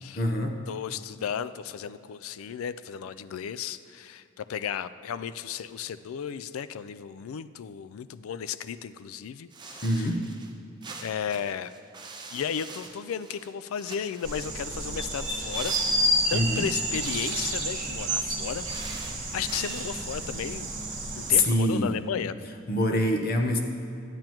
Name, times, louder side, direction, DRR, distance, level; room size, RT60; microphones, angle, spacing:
voice 1, 0.2-0.6 9.8-10.2 16.3-16.6 21.5-21.9 22.7-23.6, equal, 45° left, 3 dB, 0.8 m, -25 dB
voice 2, 0.7-10.1 11.0-11.7 12.3-15.7 16.3-20.7 21.1-22.4, left 8 dB, 85° left, 13 dB, 0.3 m, -34 dB
sound 1, 9.5-10.5 10.8-13.5 13.8-14.6 15.5-16.5 16.9-17.8 18.4-20.0, right 4 dB, 20° right, 0.6 m, -43 dB
sound 2, 14.2-21.4, right 1 dB, 35° right, 1.3 m, -30 dB
12.5 x 8.9 x 3.0 m, 2.7 s
head